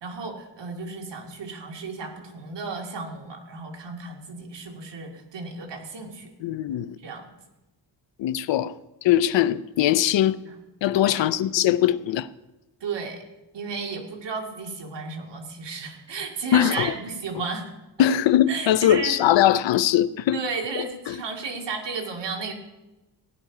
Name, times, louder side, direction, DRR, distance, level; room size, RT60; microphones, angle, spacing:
voice 1, 0.0-6.3 7.0-7.2 10.5-10.6 10.9-11.2 12.8-13.2 13.5-17.7 18.5-19.2 20.3-22.5, right 4 dB, 70° right, 2.4 m, -33 dB
voice 2, 6.4-7.0 8.2-8.7 9.0-10.4 10.8-12.3 16.5-16.9 18.0-20.4 20.7-21.2, left 11 dB, 85° left, 0.7 m, -21 dB
15.5 x 10.5 x 4.9 m
wide cardioid pair, 115°, 43 cm